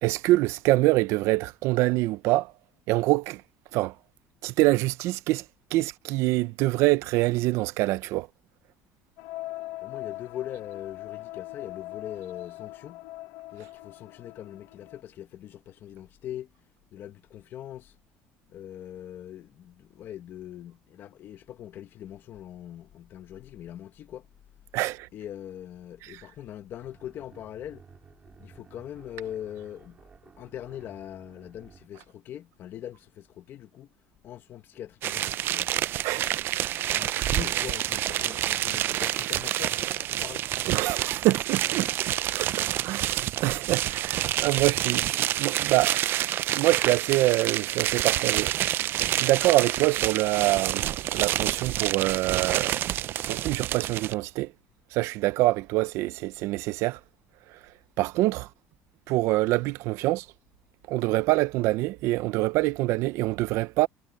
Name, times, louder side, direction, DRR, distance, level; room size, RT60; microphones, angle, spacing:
voice 1, 0.0-2.5 2.9-3.4 3.7-3.9 4.4-5.4 5.7-8.3 24.7-25.1 26.0-26.2 36.0-36.6 37.0-37.3 40.7-41.9 42.4-48.5 49.1-52.8 53.3-54.5 54.9-57.0 58.0-58.5 59.1-60.3 60.9-63.9, right 18 dB, 65° right, 0.8 m, -25 dB
sound 1, 9.2-15.0, left 17 dB, 75° left, 1.4 m, -41 dB
voice 2, 9.8-13.0 13.5-16.5 16.9-17.9 18.5-24.2 25.1-27.8 28.4-33.9 34.2-35.7 36.9-40.4, left 11 dB, 45° left, 1.6 m, -41 dB
sound 2, 26.8-31.9, right 6 dB, 25° right, 3.7 m, -54 dB
sound 3, 35.0-54.1, right 13 dB, 45° right, 0.4 m, -28 dB
cardioid pair, 145°, 5 cm